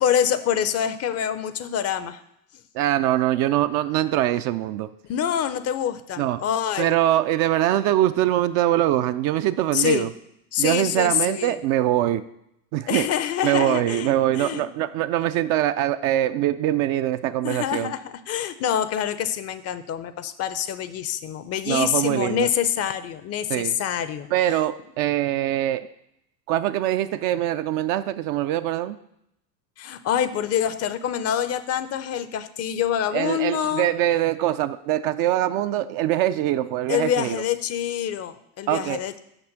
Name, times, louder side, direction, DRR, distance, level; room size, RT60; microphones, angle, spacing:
voice 1, 0.0-2.2 5.1-7.0 9.7-10.1 10.5-11.6 12.9-14.9 17.4-24.3 29.8-33.9 36.9-39.2, left 9 dB, 30° left, 13 dB, 0.5 m, -26 dB
voice 2, 2.7-4.9 6.2-6.4 6.8-10.1 10.6-12.2 12.7-13.1 13.4-17.9 21.7-22.5 23.5-23.8 24.3-25.9 26.5-29.0 33.1-37.4 38.7-39.0, right 13 dB, 45° right, 11 dB, 0.4 m, -23 dB
6.1 x 6.0 x 6.5 m, 0.78 s
hypercardioid pair, 85°, 49 cm